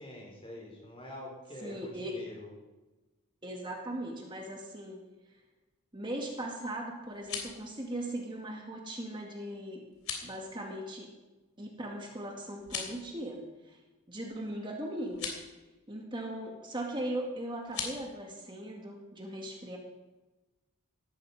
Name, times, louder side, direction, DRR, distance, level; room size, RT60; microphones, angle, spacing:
voice 1, 0.0-2.5, left 1 dB, 25° left, 0 dB, 4.3 m, -45 dB
voice 2, 1.6-2.2 3.4-5.0 5.9-9.8 10.2-11.1 11.6-13.8 14.1-15.3 15.9-19.8, right 1 dB, 20° right, 1 dB, 2.0 m, -39 dB
sound 1, 7.0-7.6 9.9-10.3 12.6-13.0 15.1-15.4 17.6-18.0, left 6 dB, 75° left, 3.4 m, -38 dB
17.0 x 13.5 x 4.8 m, 1.1 s
head